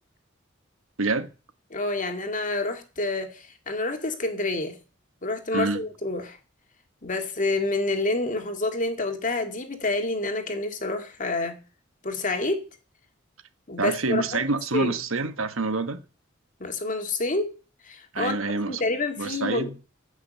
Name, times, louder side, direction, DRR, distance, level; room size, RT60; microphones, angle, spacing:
voice 1, 1.0-1.3 5.5-5.8 13.8-16.0 18.1-18.8 19.2-19.7, right 3 dB, 90° right, 1.4 m, -27 dB
voice 2, 1.7-4.8 5.2-6.4 7.0-11.6 12.0-12.6 13.7-14.4 14.7-14.9 16.6-17.5 17.8-19.7, left 2 dB, 40° left, 2.2 m, -28 dB
14.5 x 6.3 x 7.6 m
head